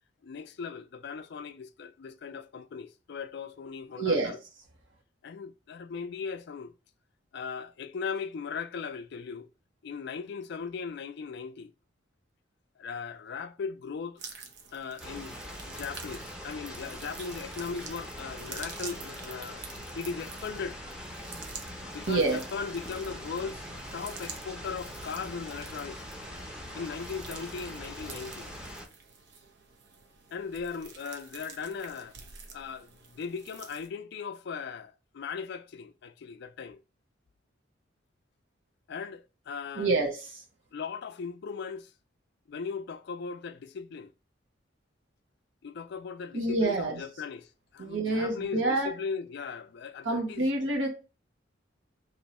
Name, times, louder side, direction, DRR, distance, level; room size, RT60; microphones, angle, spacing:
voice 1, 0.2-4.4 5.2-6.7 7.3-9.5 9.8-11.7 12.8-14.2 14.7-15.4 15.7-19.6 20.0-20.8 21.9-23.6 23.9-26.0 26.7-28.5 30.3-32.1 32.5-36.8 38.9-39.9 40.7-41.9 42.5-44.1 45.6-50.5, left 5 dB, 65° left, 0.4 m, -38 dB
voice 2, 4.0-4.3 22.1-22.4 39.7-40.4 46.3-47.0 47.8-48.9 50.0-50.9, right 2 dB, 90° right, 1.0 m, -27 dB
sound 1, 14.2-33.9, right 5 dB, 65° right, 0.7 m, -48 dB
sound 2, 15.0-28.9, equal, 5° right, 0.7 m, -42 dB
3.0 x 2.7 x 4.2 m
head